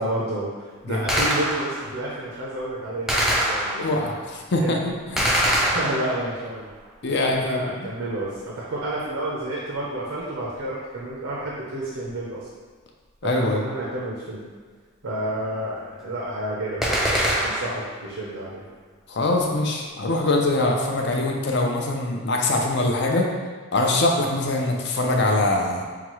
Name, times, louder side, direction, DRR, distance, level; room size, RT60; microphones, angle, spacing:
voice 1, 0.0-4.1 4.6-4.8 5.6-6.7 7.2-12.5 13.2-14.4 15.0-17.0 17.4-18.6, right 1 dB, 70° right, -4 dB, 0.6 m, -30 dB
Gunshot gunfire, 1.1-1.9 3.1-4.1 5.2-6.4 16.8-17.9, equal, ahead, 0.4 m, -23 dB
voice 2, 3.8-5.5 7.0-7.9 13.2-13.6 19.1-23.3 23.7-25.8, left 2 dB, 55° left, 1 dB, 0.5 m, -23 dB
5.8 x 2.3 x 3.0 m, 1.5 s
head